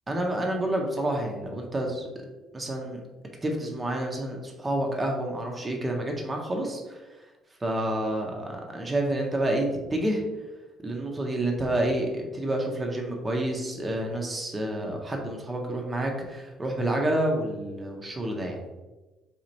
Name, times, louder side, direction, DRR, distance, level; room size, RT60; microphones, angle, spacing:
voice 1, 0.1-2.0 2.5-3.0 3.4-7.0 7.6-10.2 10.8-18.6, right 1 dB, 25° right, 1 dB, 0.8 m, -29 dB
4.1 x 2.9 x 2.8 m, 1.1 s
hypercardioid pair, 50°, 0 cm